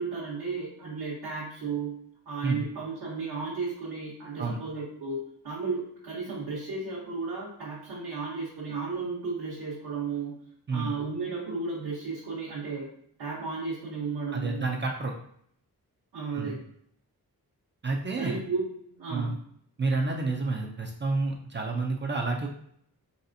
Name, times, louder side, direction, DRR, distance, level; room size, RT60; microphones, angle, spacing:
voice 1, 0.0-2.0 2.3-12.9 13.2-14.7 16.1-16.6 18.2-18.7 18.9-19.4, right 4 dB, 80° right, -8 dB, 1.0 m, -34 dB
voice 2, 14.3-15.1 16.4-16.6 17.8-18.4 19.1-19.4 19.8-22.5, right 3 dB, 30° right, 1 dB, 0.4 m, -29 dB
4.1 x 3.2 x 2.6 m, 0.66 s
wide cardioid pair, 180°, 37 cm